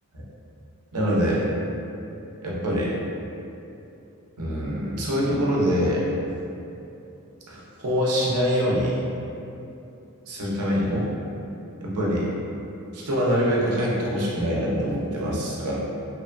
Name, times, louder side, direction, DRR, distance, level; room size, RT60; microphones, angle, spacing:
voice 1, 0.9-1.4 2.4-3.0 4.4-6.1 7.5-9.0 10.3-11.1 11.8-12.3 12.9-15.8, equal, 80° right, -5 dB, 0.6 m, -24 dB
2.8 x 2.1 x 2.4 m, 2.8 s
head